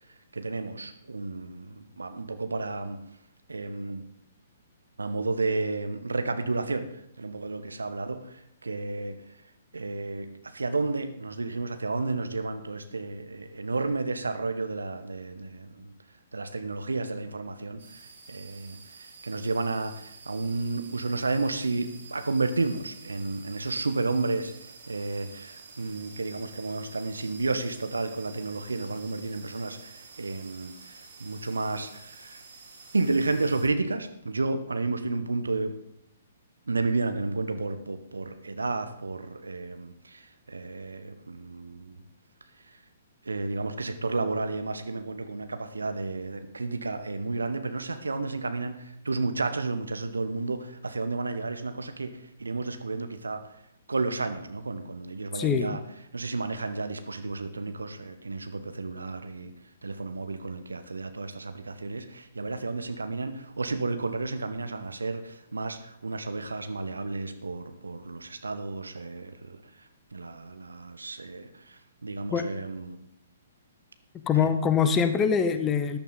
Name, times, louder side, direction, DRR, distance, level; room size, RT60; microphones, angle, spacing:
voice 1, 0.3-3.0 3.5-4.0 5.0-6.9 7.2-9.3 9.7-15.9 16.3-32.4 32.9-35.8 36.7-42.0 42.7-42.8 43.2-53.5 53.9-55.8 56.1-59.5 59.8-73.0 74.4-74.5, right 3 dB, 70° right, 9 dB, 1.1 m, -32 dB
sound 1, 17.8-33.7, right 4 dB, 50° right, 2.6 m, -49 dB
voice 2, 55.3-55.8 72.3-72.5 74.1-76.0, left 7 dB, 15° left, 10 dB, 0.9 m, -24 dB
14.0 x 10.5 x 3.9 m, 0.75 s
figure-of-eight pair, 120°, 0 cm